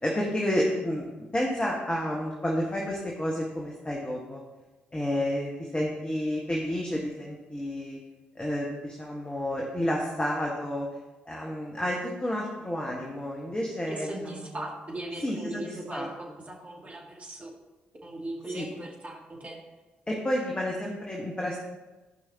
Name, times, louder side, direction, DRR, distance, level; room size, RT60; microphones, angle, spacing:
voice 1, 0.0-4.4 4.9-8.0 8.3-10.9 11.2-14.6 15.2-16.1 18.5-18.6 20.1-21.6, left 1 dB, 20° left, -2 dB, 1.6 m, -30 dB
voice 2, 13.9-16.1 16.5-17.5 18.0-19.6, right 1 dB, 30° right, -1 dB, 2.4 m, -38 dB
16.0 x 5.5 x 3.0 m, 1.1 s
figure-of-eight pair, 40°, 5 cm